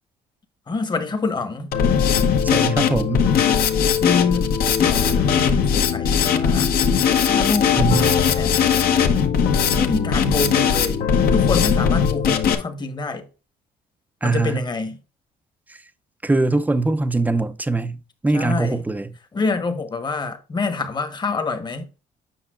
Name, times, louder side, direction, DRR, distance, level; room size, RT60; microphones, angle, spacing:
voice 1, 0.7-1.7 3.9-6.7 7.3-8.6 9.8-11.0 11.3-13.3 14.2-15.0 18.3-18.8 19.3-21.9, left 4 dB, 25° left, 1.1 m, -26 dB
Drum kit, 1.7-12.5, left 7 dB, 65° left, 1.1 m, -19 dB
voice 2, 2.4-3.3 7.8-8.1 14.2-14.6 15.7-15.8 16.2-19.1, right 2 dB, 10° right, 0.5 m, -22 dB
8.1 x 5.6 x 2.4 m
cardioid pair, 110°, 17 cm